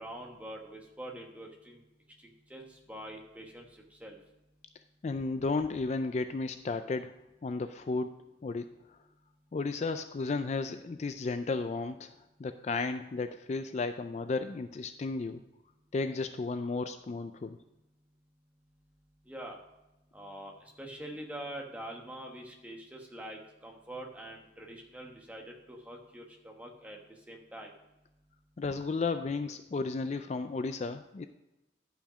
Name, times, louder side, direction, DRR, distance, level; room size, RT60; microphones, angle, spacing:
voice 1, 0.0-1.8 2.5-3.6 4.0-4.2 19.3-19.6 20.1-20.5 20.8-25.4 25.7-27.0 27.3-27.7, right 1 dB, 10° right, 0 dB, 1.3 m, -44 dB
voice 2, 5.0-7.1 7.4-8.7 9.5-12.1 12.4-15.4 15.9-17.6 28.6-31.3, left 3 dB, 35° left, 9 dB, 0.3 m, -33 dB
11.0 x 5.8 x 5.0 m, 0.98 s
head